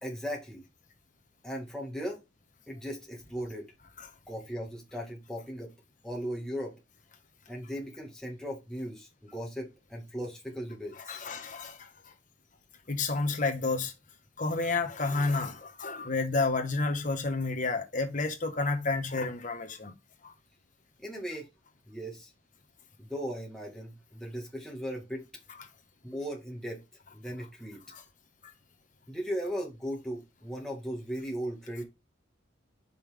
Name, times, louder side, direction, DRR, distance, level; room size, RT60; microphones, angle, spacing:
voice 1, 0.0-0.6 1.4-2.2 2.7-3.7 4.3-5.7 6.0-6.8 7.5-11.3 21.0-21.5 21.9-22.3 23.0-25.3 26.0-26.8 27.1-27.8 29.1-31.8, equal, 5° left, 1.7 m, -37 dB
voice 2, 11.1-11.9 12.9-13.9 14.4-19.9 20.2-20.3 27.9-28.0, left 3 dB, 40° left, 1.2 m, -30 dB
5.6 x 5.4 x 3.4 m
head